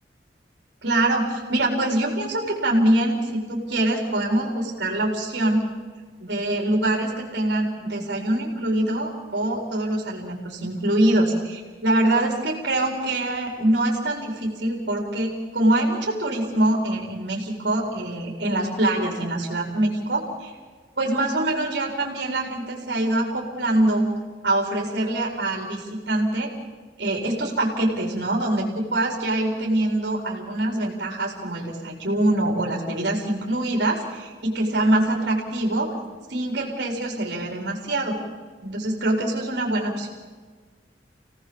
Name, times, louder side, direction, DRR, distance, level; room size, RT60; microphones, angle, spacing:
voice 1, 0.8-5.7 6.2-20.5 21.0-24.1 24.4-26.5 27.0-35.9 36.3-38.2 38.6-40.1, right 1 dB, 70° right, 0 dB, 4.7 m, -24 dB
29.0 x 18.5 x 7.3 m, 1.5 s
head